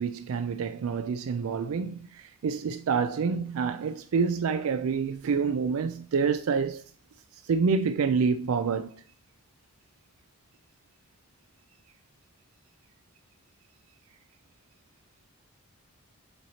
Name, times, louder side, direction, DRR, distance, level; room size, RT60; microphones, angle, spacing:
voice 1, 0.0-6.8 7.4-8.9, right 5 dB, 75° right, 0.4 m, -27 dB
7.8 x 3.0 x 4.0 m
head